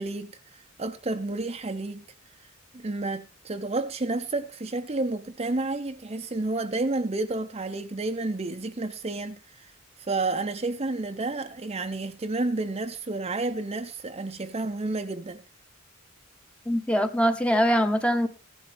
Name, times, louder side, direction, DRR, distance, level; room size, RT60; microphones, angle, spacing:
voice 1, 0.0-2.0 2.4-9.7 10.0-15.4, right 2 dB, 30° right, 0.7 m, -31 dB
voice 2, 16.7-18.3, equal, 5° left, 1.0 m, -23 dB
15.5 x 11.5 x 3.4 m
head